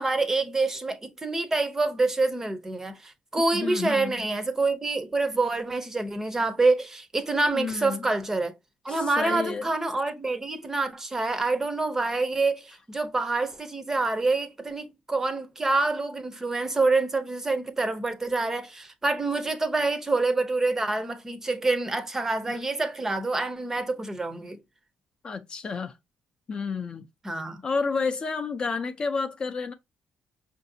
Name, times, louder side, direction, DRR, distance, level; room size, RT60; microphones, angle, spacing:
voice 1, 0.0-8.5 8.8-24.6 27.2-27.6, right 3 dB, 15° right, 0.6 m, -27 dB
voice 2, 3.5-4.2 7.5-8.0 8.9-9.7 25.2-25.9 26.5-27.0 27.6-29.7, left 4 dB, 35° left, 0.4 m, -30 dB
5.4 x 2.6 x 2.7 m
cardioid pair, 130°, 3 cm